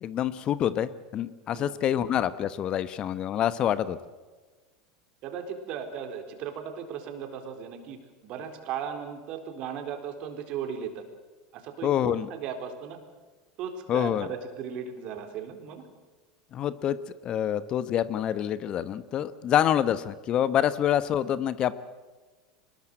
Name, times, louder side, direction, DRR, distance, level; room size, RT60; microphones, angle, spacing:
voice 1, 0.0-4.0 11.8-12.3 13.9-14.3 16.5-17.0 17.2-21.7, left 10 dB, 40° left, 15 dB, 1.1 m, -26 dB
voice 2, 5.2-11.0 11.5-13.0 13.6-15.9 19.4-19.5, right 7 dB, 50° right, 6 dB, 4.1 m, -37 dB
24.0 x 20.5 x 7.8 m, 1.3 s
hypercardioid pair, 80°, 2 cm